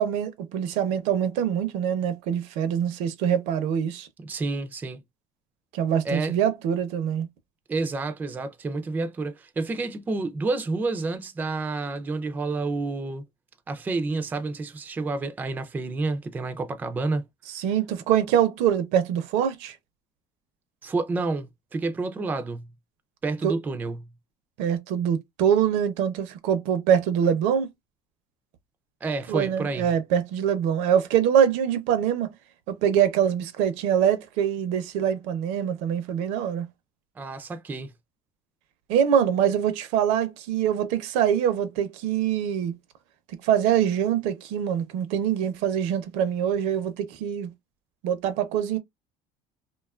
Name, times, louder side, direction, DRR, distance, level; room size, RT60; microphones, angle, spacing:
voice 1, 0.0-4.1 5.7-7.3 17.5-19.8 23.4-23.5 24.6-27.7 29.3-32.3 32.7-36.7 38.9-42.7 43.4-47.5 48.0-48.8, right 9 dB, 75° right, 0.6 m, -24 dB
voice 2, 4.2-5.0 6.0-6.4 7.7-13.2 13.7-17.2 20.8-22.7 23.2-24.1 29.0-29.9 37.2-37.9, right 3 dB, 15° right, 0.4 m, -29 dB
2.7 x 2.3 x 2.2 m
cardioid pair, 140°, 12 cm